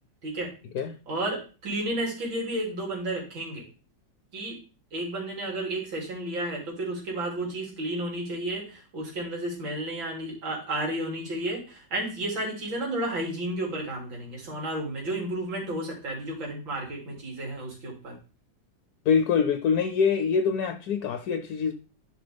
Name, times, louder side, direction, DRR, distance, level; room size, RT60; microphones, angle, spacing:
voice 1, 1.1-3.6 4.3-4.6 4.9-18.2, right 1 dB, 85° right, -1 dB, 3.7 m, -32 dB
voice 2, 19.1-21.7, left 6 dB, 65° left, 8 dB, 1.1 m, -24 dB
12.0 x 5.3 x 3.4 m, 0.35 s
omnidirectional pair, 2.1 m